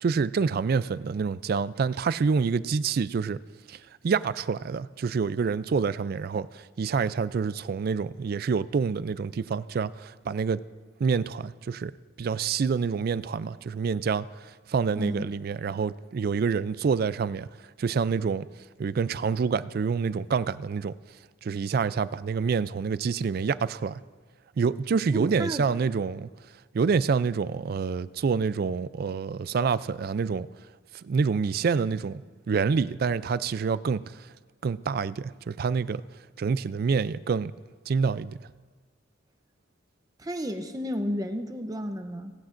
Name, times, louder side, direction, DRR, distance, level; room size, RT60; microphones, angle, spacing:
voice 1, 0.0-3.4 3.7-3.8 4.0-10.6 11.0-11.9 12.2-14.3 14.7-17.5 17.8-18.5 18.8-20.9 21.4-24.0 24.6-26.3 26.7-30.5 31.0-34.0 34.6-36.0 36.4-37.5 37.9-38.4, right 5 dB, 50° right, 0.3 m, -27 dB
voice 2, 15.0-15.3 25.1-25.6 40.2-42.3, equal, 20° right, 0.7 m, -32 dB
17.5 x 17.0 x 2.6 m
head